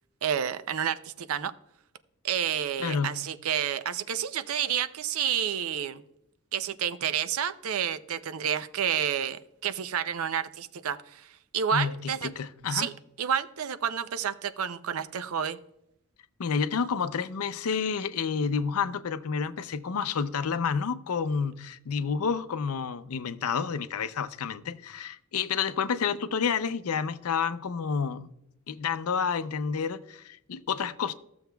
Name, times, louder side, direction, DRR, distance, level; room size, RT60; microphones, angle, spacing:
voice 1, 0.2-1.5 2.2-6.0 6.5-11.3 11.5-12.3 12.7-12.9 13.2-15.6, right 8 dB, 75° right, 0.5 m, -30 dB
voice 2, 2.8-3.2 11.7-12.9 16.4-28.3 28.7-31.1, left 6 dB, 85° left, 0.5 m, -29 dB
14.5 x 7.0 x 2.3 m
head